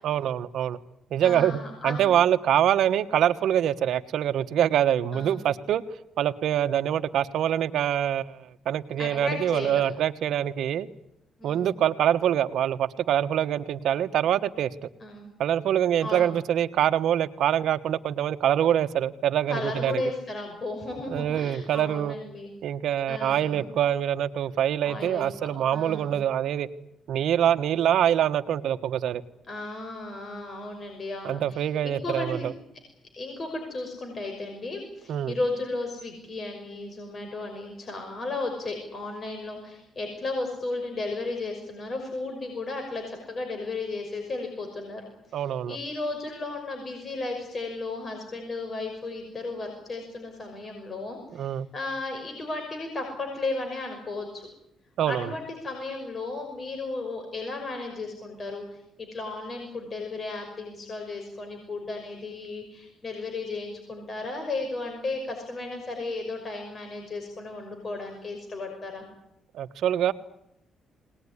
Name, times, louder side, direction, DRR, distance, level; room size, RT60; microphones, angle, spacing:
voice 1, 0.0-0.8 1.1-5.8 6.2-10.9 11.4-14.9 15.4-20.0 21.1-22.2 22.6-26.7 27.1-29.2 31.2-32.5 35.1-35.4 45.3-45.8 51.3-51.7 55.0-55.3 69.5-70.1, right 10 dB, 75° right, 11 dB, 1.2 m, -25 dB
voice 2, 1.2-2.1 5.1-5.4 9.0-9.8 11.4-11.7 15.0-15.3 16.0-16.3 19.5-22.5 23.1-23.7 24.8-26.1 29.5-32.5 33.2-54.5 55.1-69.1, left 2 dB, 40° left, 4 dB, 5.8 m, -34 dB
22.0 x 19.5 x 9.9 m, 0.81 s
cardioid pair, 90°, 0 cm